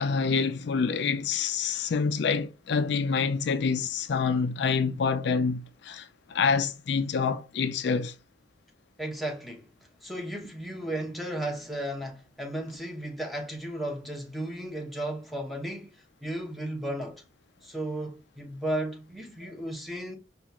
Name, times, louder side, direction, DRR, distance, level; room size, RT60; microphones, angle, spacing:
voice 1, 0.0-8.1, left 5 dB, 65° left, 0.4 m, -27 dB
voice 2, 9.0-9.7 10.0-15.9 16.2-17.2 17.6-20.2, right 1 dB, ahead, 0.9 m, -34 dB
4.9 x 2.4 x 2.9 m
head